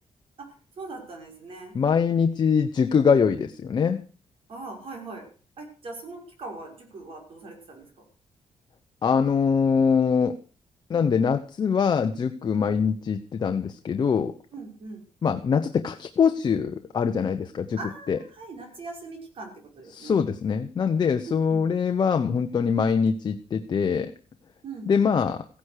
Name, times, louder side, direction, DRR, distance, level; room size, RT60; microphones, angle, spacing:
voice 1, 0.4-1.7 4.5-5.3 5.6-7.9 14.5-15.0 17.8-20.2 21.3-21.7 24.6-25.1, right 3 dB, 50° right, 2 dB, 5.7 m, -40 dB
voice 2, 1.7-4.0 9.0-10.3 10.9-14.3 15.2-17.8 18.1-18.2 19.9-24.1 24.9-25.4, left 6 dB, 40° left, 7 dB, 1.0 m, -23 dB
16.0 x 10.5 x 6.7 m, 0.40 s
wide cardioid pair, 160°, 12 cm